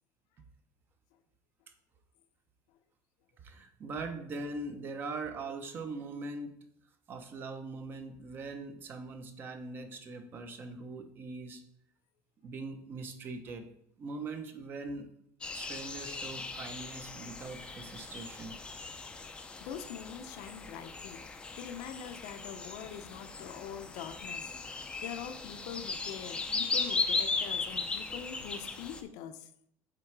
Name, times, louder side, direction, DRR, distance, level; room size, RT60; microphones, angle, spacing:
voice 1, 3.4-6.6 7.1-11.6 12.4-13.7 14.0-15.1 15.5-18.6, right 3 dB, 30° right, 7 dB, 0.8 m, -41 dB
sound 1, 15.4-29.0, left 4 dB, 15° left, 0.5 m, -37 dB
voice 2, 19.6-29.5, left 8 dB, 70° left, 9 dB, 0.7 m, -44 dB
7.6 x 3.6 x 4.7 m, 0.70 s
cardioid pair, 155°, 7 cm